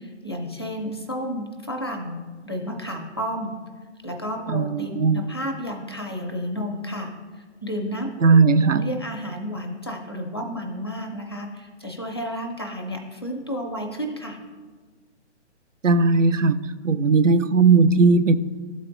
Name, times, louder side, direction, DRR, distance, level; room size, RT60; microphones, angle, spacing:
voice 1, 0.0-2.2 2.4-3.5 4.0-8.3 8.6-14.4, equal, 20° left, 1 dB, 0.4 m, -32 dB
voice 2, 4.5-5.2 8.2-8.9 15.8-16.6 16.8-18.4, right 4 dB, 90° right, 12 dB, 0.5 m, -17 dB
12.0 x 4.1 x 3.1 m, 1.4 s
figure-of-eight pair, 135°, 37 cm